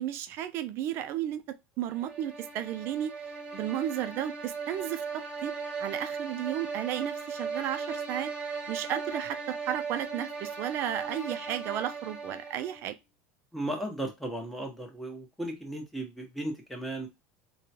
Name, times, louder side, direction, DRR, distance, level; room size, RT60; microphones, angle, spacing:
voice 1, 0.0-3.1 3.5-5.5 5.8-8.3 8.7-13.0, right 11 dB, 55° right, 0.4 m, -33 dB
sound 1, 1.9-12.9, right 5 dB, 20° right, 1.5 m, -38 dB
voice 2, 13.5-17.1, right 1 dB, ahead, 1.1 m, -35 dB
3.6 x 2.3 x 2.8 m
supercardioid pair, 110°, 5 cm